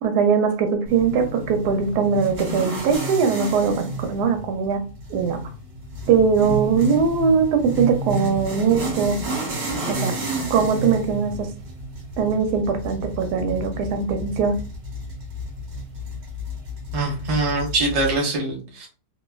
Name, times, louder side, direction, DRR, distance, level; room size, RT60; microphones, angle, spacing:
voice 1, 0.0-4.8 5.1-5.4 6.1-9.2 9.9-10.1 10.5-11.5 12.2-14.5, right 6 dB, 85° right, 6 dB, 1.2 m, -21 dB
sound 1, 0.9-18.2, right 1 dB, 55° right, 1.1 m, -31 dB
voice 2, 16.9-18.9, right 2 dB, 40° right, -1 dB, 0.5 m, -23 dB
2.7 x 2.2 x 2.2 m, 0.35 s
omnidirectional pair, 1.7 m